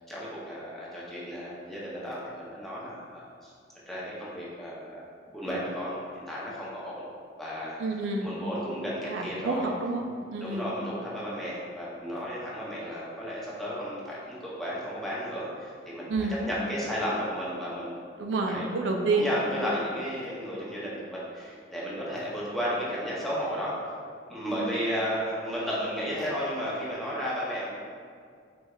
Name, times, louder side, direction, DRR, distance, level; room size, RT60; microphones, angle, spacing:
voice 1, 0.1-3.5 3.9-7.1 7.4-7.8 8.2-9.7 10.4-17.9 18.5-18.7 19.1-23.9 24.3-27.7, equal, ahead, -8 dB, 0.6 m, -33 dB
voice 2, 7.8-8.3 9.1-10.7 16.1-16.4 18.2-19.3 24.6-24.7, right 3 dB, 80° right, 2 dB, 0.4 m, -29 dB
4.5 x 2.2 x 2.3 m, 2.2 s
head